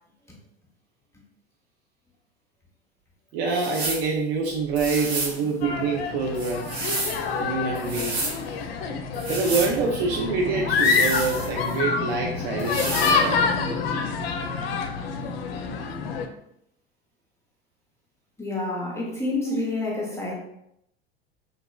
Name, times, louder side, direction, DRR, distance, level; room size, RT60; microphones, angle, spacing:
voice 1, 3.3-6.7 7.4-8.2 9.2-12.8 13.2-13.5 19.5-19.6, right 4 dB, 50° right, 0.5 m, -26 dB
sound 1, 3.5-4.1 4.7-5.4 6.3-7.2 7.7-8.4 9.1-9.7 10.7-11.8 12.6-13.2, right 2 dB, 80° right, 0.9 m, -30 dB
sound 2, 5.6-16.3, left 5 dB, 70° left, 0.5 m, -27 dB
voice 2, 18.4-20.3, left 3 dB, 10° left, 0.6 m, -29 dB
2.8 x 2.8 x 2.3 m
figure-of-eight pair, 75°, 31 cm